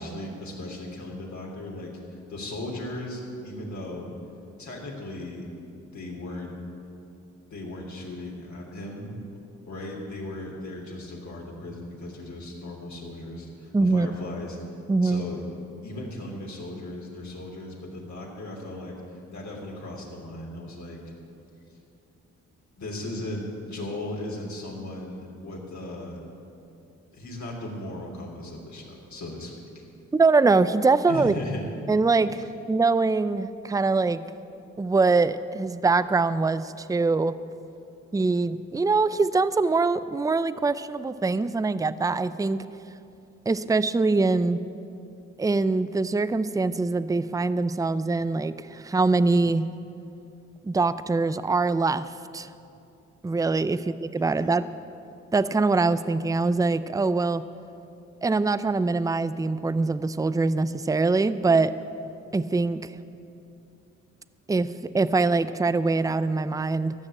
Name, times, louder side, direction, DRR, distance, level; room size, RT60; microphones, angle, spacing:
voice 1, 0.0-4.1 4.6-5.5 5.9-6.5 7.5-9.2 9.7-14.6 15.0-15.4 15.8-18.9 19.3-21.0 22.8-26.2 27.1-29.5 31.1-31.8 53.7-53.8 54.2-54.5, left 1 dB, 65° left, -2 dB, 3.2 m, -37 dB
voice 2, 13.7-14.1 14.9-15.2 30.1-31.3 31.9-34.2 34.8-37.3 38.1-42.6 43.5-44.6 45.4-49.6 50.6-52.1 52.3-52.5 53.2-54.7 55.3-57.4 58.2-61.7 62.3-62.9 64.5-64.7 64.9-66.9, right 3 dB, 10° right, 14 dB, 0.5 m, -23 dB
14.5 x 6.5 x 8.6 m, 2.7 s
supercardioid pair, 50°, 31 cm